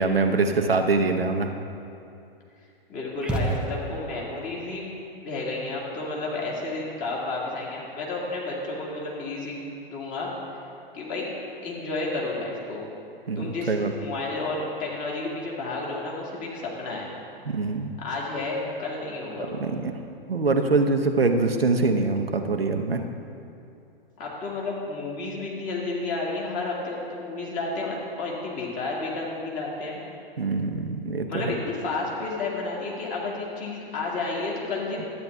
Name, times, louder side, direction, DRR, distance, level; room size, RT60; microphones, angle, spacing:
voice 1, 0.0-1.5 13.3-13.9 17.5-17.9 19.4-19.9 20.3-23.0 30.4-31.5, right 3 dB, 85° right, 5 dB, 0.8 m, -24 dB
voice 2, 2.9-4.9 5.2-9.6 9.9-10.3 10.9-11.3 11.6-12.8 13.4-17.1 18.0-19.5 24.2-30.0 31.3-35.0, left 3 dB, 30° left, -3 dB, 2.0 m, -31 dB
sound 1, 3.2-4.2, right 2 dB, 5° right, 0.4 m, -29 dB
12.0 x 8.8 x 3.4 m, 2.6 s
figure-of-eight pair, 105°, 29 cm